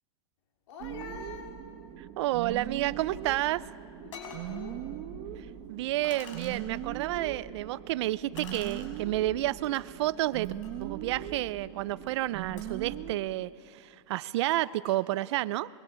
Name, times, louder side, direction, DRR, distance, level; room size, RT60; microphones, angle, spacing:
voice 1, 0.7-1.6 4.0-4.8 14.4-15.0, left 6 dB, 70° left, 2 dB, 3.9 m, -46 dB
sound 1, 0.8-13.1, right 10 dB, 45° right, 1.4 m, -40 dB
voice 2, 2.0-3.6 5.7-10.5 10.8-15.7, right 16 dB, 60° right, 19 dB, 0.5 m, -30 dB
sound 2, 3.5-3.6 4.1-4.5 5.3-5.4 6.0-6.6 8.4-8.9 9.6-9.8 10.3-12.9, left 5 dB, 90° left, 5.2 m, -49 dB
24.0 x 23.0 x 7.0 m, 2.3 s
supercardioid pair, 130°, 16 cm